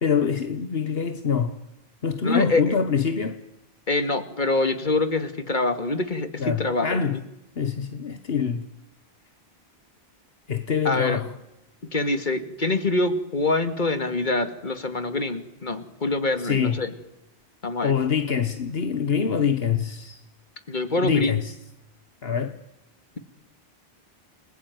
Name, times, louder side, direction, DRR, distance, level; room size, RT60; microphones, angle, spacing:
voice 1, 0.0-1.6 2.0-3.4 6.4-7.2 7.6-8.6 10.5-11.3 16.4-16.8 17.8-20.2 21.0-21.5 22.2-22.5, left 6 dB, 70° left, 1.5 m, -25 dB
voice 2, 2.2-2.8 3.9-7.0 10.8-11.2 11.9-16.9 17.6-17.9 20.7-21.4, left 2 dB, 50° left, 2.4 m, -25 dB
29.5 x 21.0 x 9.4 m
omnidirectional pair, 1.1 m